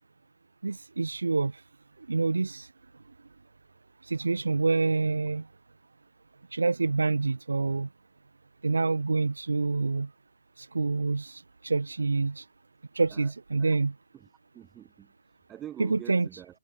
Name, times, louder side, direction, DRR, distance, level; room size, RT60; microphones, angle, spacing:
voice 1, 0.6-1.5 2.1-2.7 4.0-5.4 6.5-7.9 8.6-10.1 10.6-12.4 12.9-13.9 15.8-16.3, right 3 dB, 85° right, 0.4 m, -27 dB
voice 2, 14.5-16.6, right 11 dB, 15° right, 1.1 m, -46 dB
hypercardioid pair, 145°, 0 cm